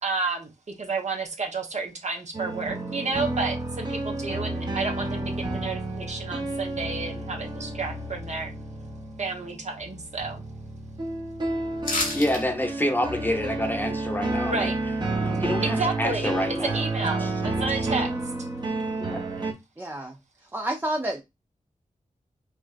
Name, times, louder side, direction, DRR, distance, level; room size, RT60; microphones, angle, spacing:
voice 1, 0.0-0.5 0.8-8.5 9.2-10.4 14.5-14.8 15.6-16.3 16.6-18.1, right 3 dB, 55° right, 1.0 m, -31 dB
sound 1, 2.3-19.5, right 2 dB, 30° right, 1.0 m, -31 dB
sound 2, 11.8-12.4 12.8-12.9, left 2 dB, 85° left, 1.2 m, -28 dB
voice 2, 12.1-14.7 15.2-16.8 17.2-17.3 19.0-19.5, left 1 dB, 15° left, 0.9 m, -28 dB
voice 3, 19.8-20.2 20.5-21.2, right 1 dB, 15° right, 0.5 m, -29 dB
4.9 x 2.3 x 2.5 m
cardioid pair, 55°, 14 cm